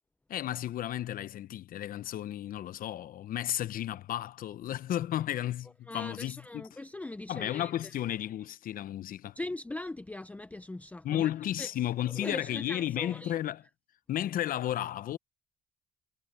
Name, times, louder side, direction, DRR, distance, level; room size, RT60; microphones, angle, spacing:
voice 1, 0.3-6.7 7.3-9.3 11.0-13.6 14.1-15.2, left 12 dB, 55° left, 0.8 m, -33 dB
voice 2, 5.9-7.9 9.4-11.3 11.6-11.7 12.1-13.3, left 2 dB, 10° left, 0.6 m, -40 dB
cardioid pair, 110°, 17 cm